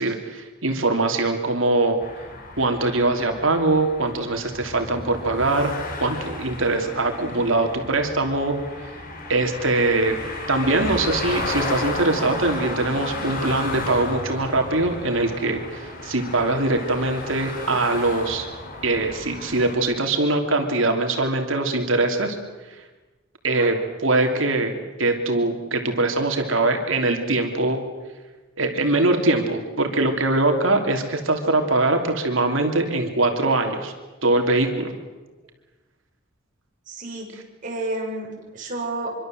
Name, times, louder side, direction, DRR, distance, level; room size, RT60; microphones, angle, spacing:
voice 1, 0.0-2.0 2.6-5.7 6.0-8.6 9.3-10.2 10.5-18.5 18.8-22.4 23.4-24.7 25.0-27.8 28.6-33.9 34.2-34.9, right 2 dB, 65° right, 4 dB, 3.2 m, -22 dB
sound 1, 2.0-19.8, left 2 dB, 45° left, 4.6 m, -33 dB
voice 2, 36.9-37.3 37.6-39.1, right 2 dB, 40° right, -2 dB, 7.5 m, -30 dB
25.5 x 24.5 x 7.8 m, 1.2 s
head